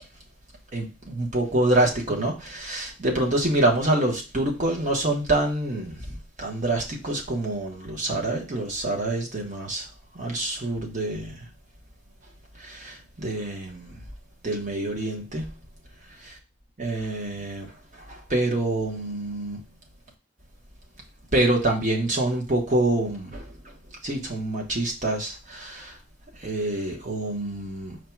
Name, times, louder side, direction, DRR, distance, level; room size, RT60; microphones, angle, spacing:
voice 1, 0.7-9.9 10.1-11.5 12.6-13.9 14.4-15.5 16.8-19.6 21.3-23.6 24.0-26.0 26.4-28.0, right 1 dB, 40° right, 1.3 m, -26 dB
4.8 x 2.4 x 4.5 m
head